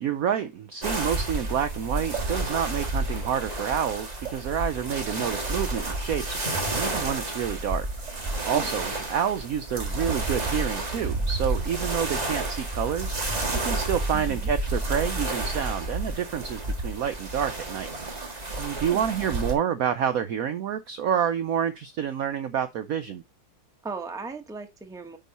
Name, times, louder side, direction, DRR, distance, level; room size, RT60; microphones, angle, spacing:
voice 1, 0.0-7.9 8.2-17.9 18.6-23.2, right 8 dB, 70° right, 0.8 m, -28 dB
sound 1, 0.8-19.5, right 2 dB, 25° right, 1.6 m, -30 dB
voice 2, 14.1-14.5 18.8-19.1 23.8-25.2, right 4 dB, 5° right, 0.8 m, -37 dB
9.1 x 4.1 x 4.1 m
omnidirectional pair, 2.0 m